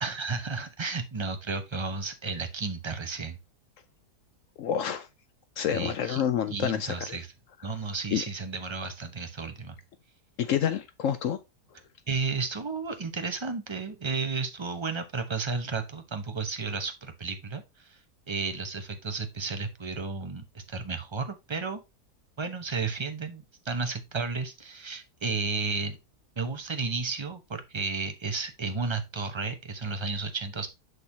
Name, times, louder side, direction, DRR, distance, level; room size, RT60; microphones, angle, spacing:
voice 1, 0.0-3.4 5.7-6.2 6.5-7.3 7.6-9.8 12.1-18.0 18.3-21.8 22.4-26.0 26.4-30.7, right 4 dB, 20° right, 0.8 m, -33 dB
voice 2, 4.6-5.1 5.6-7.2 8.1-8.2 10.4-11.4, left 9 dB, 65° left, 0.8 m, -28 dB
6.7 x 6.4 x 2.8 m
omnidirectional pair, 1.7 m